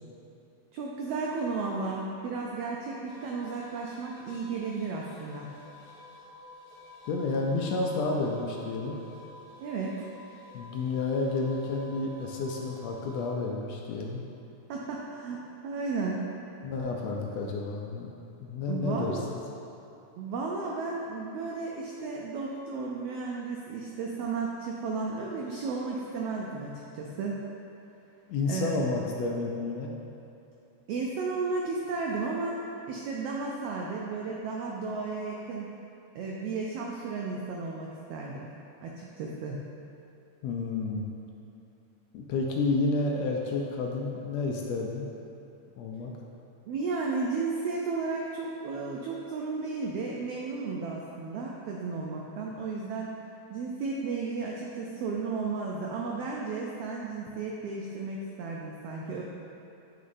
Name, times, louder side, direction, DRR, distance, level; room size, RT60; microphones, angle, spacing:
voice 1, 0.7-5.5 9.6-10.0 14.7-16.3 18.7-19.2 20.1-27.4 28.5-28.8 30.9-35.7 36.1-38.5 38.8-39.7 46.7-53.1 53.5-59.2, right 4 dB, 85° right, -2 dB, 1.3 m, -34 dB
sound 1, 3.1-13.3, left 1 dB, 50° left, 1.2 m, -51 dB
voice 2, 7.1-9.0 10.5-14.2 16.6-18.1 18.4-19.2 28.3-29.9 40.4-41.1 42.1-45.1 45.8-46.1, left 3 dB, 80° left, 0 dB, 1.6 m, -30 dB
8.0 x 6.4 x 2.6 m, 2.8 s
omnidirectional pair, 3.3 m